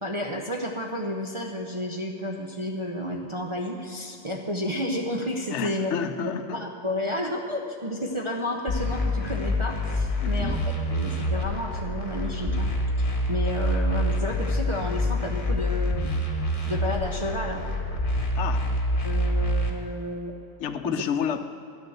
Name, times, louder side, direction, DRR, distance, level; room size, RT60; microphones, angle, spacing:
voice 1, 0.0-5.9 6.2-10.6 10.9-12.7 13.3-16.1 16.7-17.6 19.0-20.3 20.8-20.9, left 1 dB, 30° right, -1 dB, 0.8 m, -31 dB
voice 2, 5.5-6.6 10.2-10.6 18.3-18.7 20.6-21.4, left 8 dB, 85° left, 9 dB, 1.0 m, -30 dB
sound 1, 8.7-19.7, left 1 dB, 50° left, 1.5 m, -26 dB
11.5 x 6.7 x 7.9 m, 2.7 s
omnidirectional pair, 1.2 m